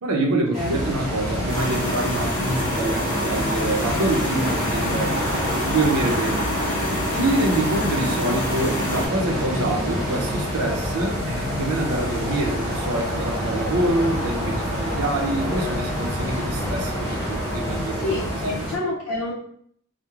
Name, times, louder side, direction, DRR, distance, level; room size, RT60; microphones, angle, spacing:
voice 1, 0.0-6.4 7.1-18.1 18.4-18.6, right 2 dB, 80° right, 0 dB, 0.6 m, -26 dB
sound 1, 0.5-18.8, equal, 30° right, 0.9 m, -28 dB
sound 2, 0.8-18.5, left 1 dB, 10° left, 0.3 m, -33 dB
voice 2, 1.0-1.5 18.0-19.3, left 2 dB, 75° left, -4 dB, 0.5 m, -29 dB
sound 3, 1.5-9.1, left 1 dB, 40° left, 0.9 m, -28 dB
2.3 x 2.0 x 2.9 m, 0.65 s
head